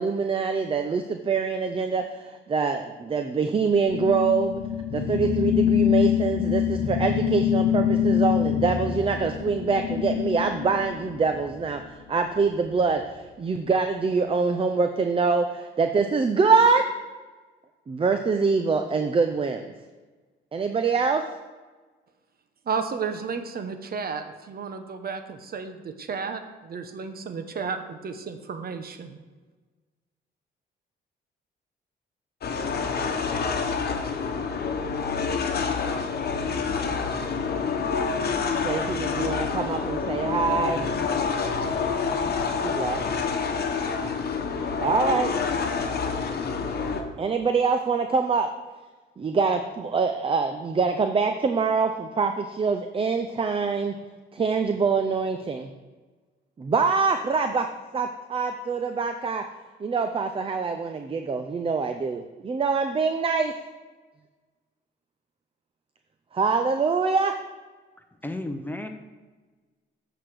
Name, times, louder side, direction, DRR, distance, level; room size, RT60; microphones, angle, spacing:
voice 1, 0.0-4.6 4.9-16.9 17.9-19.7 20.5-21.2 38.6-40.9 42.6-43.0 44.8-45.3 47.2-48.5 49.2-53.9 54.3-55.7 56.6-57.7 57.9-59.4 59.8-63.5 66.3-67.3, right 4 dB, 25° right, 7 dB, 0.5 m, -24 dB
sound 1, 3.9-11.7, left 9 dB, 85° left, 0.9 m, -25 dB
voice 2, 22.7-29.2, right 5 dB, 50° right, 8 dB, 0.9 m, -33 dB
sound 2, 32.4-47.0, left 5 dB, 50° left, 1.1 m, -27 dB
voice 3, 68.2-68.9, left 1 dB, 10° left, 6 dB, 0.8 m, -32 dB
8.0 x 4.9 x 6.2 m, 1.3 s
cardioid pair, 90°, 20 cm